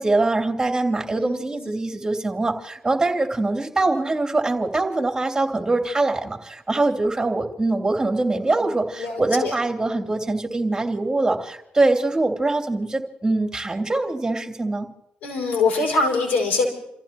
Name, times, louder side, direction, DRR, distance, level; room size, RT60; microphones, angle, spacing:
voice 1, 0.0-14.9, right 2 dB, 20° right, 2 dB, 3.0 m, -23 dB
voice 2, 1.1-1.8 8.4-8.7 9.0-9.5 9.9-10.3 15.2-16.7, left 3 dB, 80° left, 1 dB, 5.3 m, -24 dB
29.5 x 15.5 x 3.0 m, 0.82 s
cardioid pair, 65°, 3 cm